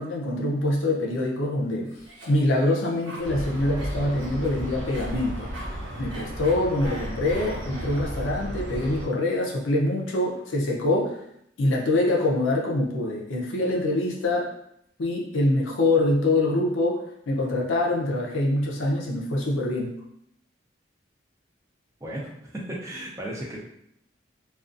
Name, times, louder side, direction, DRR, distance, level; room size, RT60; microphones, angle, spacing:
voice 1, 0.0-1.9 2.3-5.7 6.0-11.2 11.6-14.5 15.0-19.9, left 2 dB, 85° left, -2 dB, 0.5 m, -25 dB
Cough, 1.9-8.4, right 1 dB, 85° right, 1.1 m, -43 dB
sound 1, 3.2-9.1, equal, 70° right, 0.8 m, -34 dB
voice 2, 22.0-23.6, right 1 dB, 15° right, -4 dB, 0.5 m, -35 dB
2.4 x 2.3 x 2.4 m, 0.74 s
head